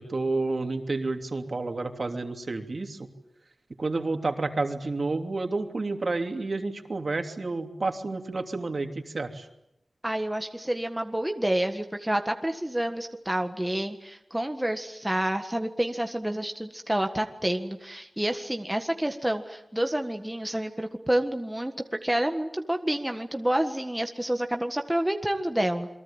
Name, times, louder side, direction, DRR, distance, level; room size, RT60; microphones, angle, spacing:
voice 1, 0.0-3.1 3.8-9.5, right 3 dB, 50° right, 5 dB, 3.1 m, -30 dB
voice 2, 10.0-25.9, right 1 dB, 10° right, 5 dB, 1.6 m, -29 dB
28.0 x 23.0 x 8.9 m, 0.82 s
wide cardioid pair, 95°, 0 cm